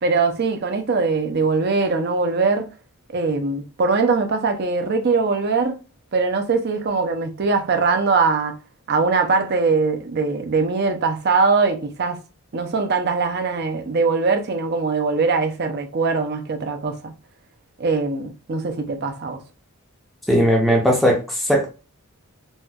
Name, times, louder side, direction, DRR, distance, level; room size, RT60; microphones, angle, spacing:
voice 1, 0.0-2.7 3.1-5.8 6.1-8.5 8.9-12.2 12.5-17.1 17.8-19.4, right 4 dB, 50° right, 0.5 m, -21 dB
voice 2, 20.3-21.7, equal, ahead, 0.5 m, -18 dB
4.1 x 2.2 x 2.3 m
head